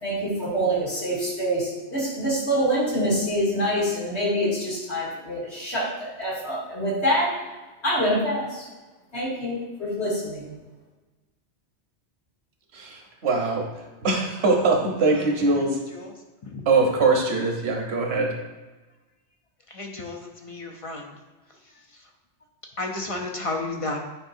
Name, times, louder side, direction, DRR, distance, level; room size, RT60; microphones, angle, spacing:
voice 1, 0.0-7.3 7.8-8.6 9.1-10.6, equal, 70° left, -6 dB, 2.5 m, -25 dB
voice 2, 12.7-13.6 14.0-15.8 16.7-18.3, right 3 dB, 65° right, 1 dB, 1.3 m, -22 dB
voice 3, 19.7-21.1 22.8-24.0, left 2 dB, 35° left, 1 dB, 0.6 m, -32 dB
9.0 x 4.9 x 2.7 m, 1.2 s
omnidirectional pair, 1.1 m